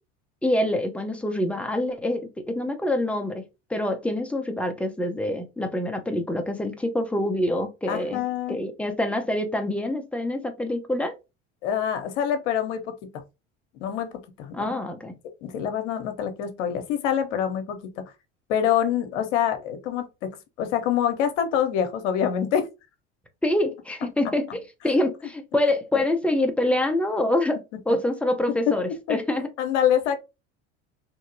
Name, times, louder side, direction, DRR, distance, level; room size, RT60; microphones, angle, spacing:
voice 1, 0.4-8.2 8.5-11.1 14.5-15.1 23.4-29.5, left 1 dB, 5° left, 0.7 m, -26 dB
voice 2, 7.9-8.6 11.6-13.0 13.7-14.7 15.4-18.0 18.5-22.7 27.9-28.0 28.5-28.8 29.1-29.2 29.6-30.2, left 9 dB, 80° left, 0.8 m, -25 dB
2.8 x 2.7 x 2.6 m
hypercardioid pair, 75°, 35 cm